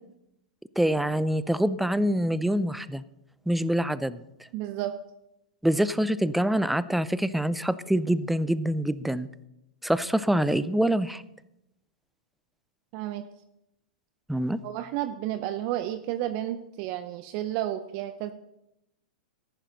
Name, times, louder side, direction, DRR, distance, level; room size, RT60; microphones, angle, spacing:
voice 1, 0.8-3.0 3.5-4.2 5.6-9.3 9.8-11.2 14.3-14.6, right 1 dB, ahead, 16 dB, 0.5 m, -25 dB
voice 2, 4.5-4.9 12.9-13.3 14.6-18.3, right 13 dB, 45° right, 9 dB, 0.7 m, -31 dB
14.0 x 11.0 x 4.0 m, 0.85 s
hypercardioid pair, 115°, 5 cm